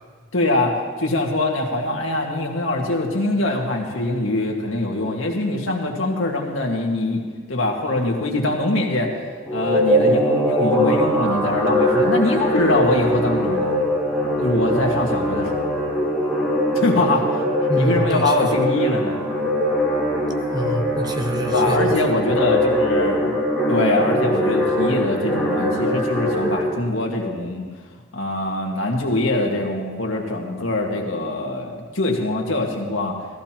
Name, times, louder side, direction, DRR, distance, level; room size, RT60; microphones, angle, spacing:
voice 1, 0.3-7.2 7.5-9.2 9.5-13.8 14.4-15.8 16.7-17.4 17.8-19.2 21.5-23.3 23.7-27.6 28.1-33.1, left 2 dB, 80° left, 0 dB, 1.8 m, -23 dB
sound 1, 9.5-26.6, equal, 5° left, 2.0 m, -21 dB
voice 2, 17.7-18.5 20.5-21.9, right 1 dB, 20° right, 5 dB, 0.7 m, -25 dB
16.0 x 14.5 x 3.0 m, 1.5 s
head